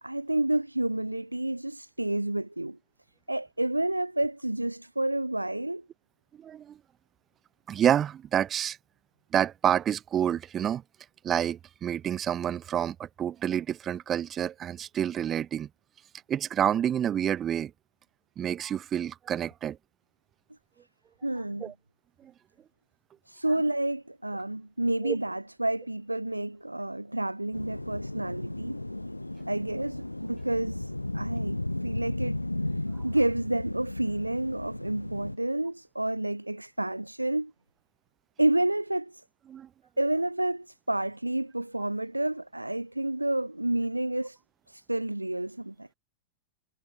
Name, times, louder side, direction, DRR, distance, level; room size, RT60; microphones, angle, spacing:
voice 1, 0.0-2.8 3.3-5.9 21.2-21.7 23.3-28.8 29.5-32.4 32.7-37.5 38.4-39.2 40.0-44.4 44.7-45.9, right 1 dB, 85° right, 0.4 m, -30 dB
voice 2, 6.4-6.8 7.7-8.8 9.3-10.8 11.2-15.7 16.3-17.7 18.4-19.8 21.6-21.7 22.2-22.3 25.0-25.2 33.0-33.1 39.5-39.7, right 9 dB, 25° right, 0.9 m, -28 dB
sound 1, 27.5-35.4, left 1 dB, 85° left, 1.7 m, -34 dB
figure-of-eight pair, 90°, 0 cm